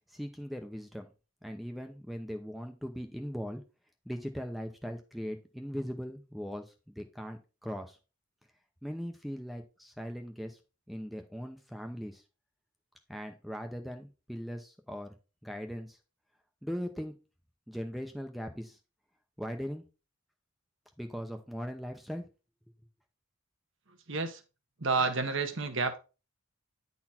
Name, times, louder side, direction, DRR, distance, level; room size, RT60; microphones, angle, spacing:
voice 1, 0.1-1.1 1.4-3.6 4.1-8.0 8.8-10.6 10.9-12.2 13.1-15.1 15.4-16.0 16.6-17.1 17.7-18.8 19.4-19.8 21.0-22.2, equal, ahead, 5 dB, 0.7 m, -39 dB
voice 2, 24.1-24.4 24.8-26.0, right 4 dB, 60° right, 9 dB, 1.2 m, -30 dB
10.0 x 4.1 x 4.3 m, 0.31 s
head